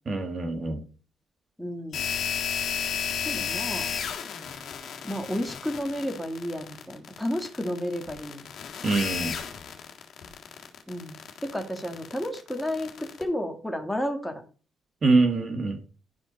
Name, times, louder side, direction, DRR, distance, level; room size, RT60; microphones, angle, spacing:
voice 1, 0.0-0.8 8.8-9.3 15.0-15.8, right 3 dB, 40° right, 5 dB, 1.7 m, -24 dB
voice 2, 1.6-2.1 3.2-3.9 5.0-8.5 10.9-14.4, equal, 5° left, 4 dB, 1.9 m, -32 dB
sound 1, 1.9-13.2, left 7 dB, 70° left, 1.7 m, -33 dB
11.0 x 4.3 x 4.1 m, 0.36 s
cardioid pair, 90°, 0 cm